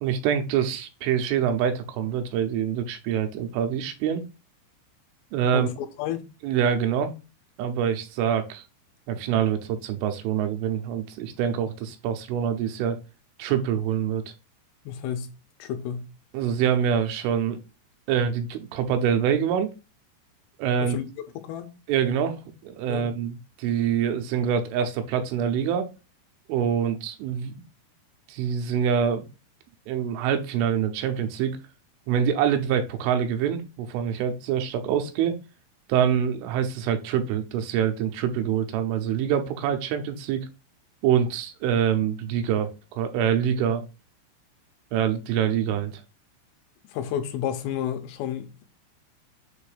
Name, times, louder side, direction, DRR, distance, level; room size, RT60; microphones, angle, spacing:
voice 1, 0.0-4.2 5.3-5.7 6.4-7.1 7.6-8.6 9.1-13.0 13.4-14.2 16.3-17.6 18.1-19.7 20.6-21.0 21.9-22.4 22.6-25.9 26.5-27.5 28.3-29.3 29.9-31.6 32.1-35.3 35.9-40.5 41.0-43.8 44.9-46.0, right 8 dB, 80° right, 3.2 m, -25 dB
voice 2, 14.9-15.3 15.6-16.1 20.8-21.7 22.9-23.1 46.9-48.6, left 9 dB, 85° left, 3.4 m, -31 dB
7.6 x 2.7 x 4.8 m
omnidirectional pair, 5.8 m